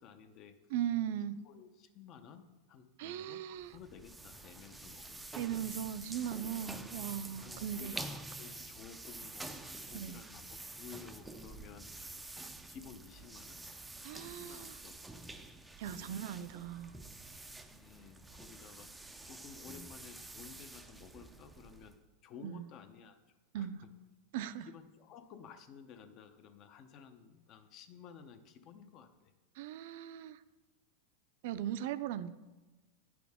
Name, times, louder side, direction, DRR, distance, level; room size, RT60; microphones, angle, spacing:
voice 1, 0.0-0.7 1.4-3.4 3.7-5.3 6.6-6.8 7.4-12.1 12.7-13.6 14.2-15.0 15.8-16.2 17.7-22.0 22.2-23.2 23.5-23.7 24.6-29.3, left 7 dB, 35° left, 9 dB, 0.7 m, -54 dB
voice 2, 0.7-1.4 3.0-3.7 5.4-7.9 9.9-10.2 14.0-14.8 15.8-16.9 22.4-22.6 23.5-23.8 24.3-24.7 29.6-30.4 31.4-32.3, right 10 dB, 60° right, 14 dB, 0.4 m, -38 dB
sound 1, 3.6-22.0, right 2 dB, 5° right, 0.4 m, -48 dB
9.4 x 6.1 x 3.6 m, 1.2 s
supercardioid pair, 145°, 0 cm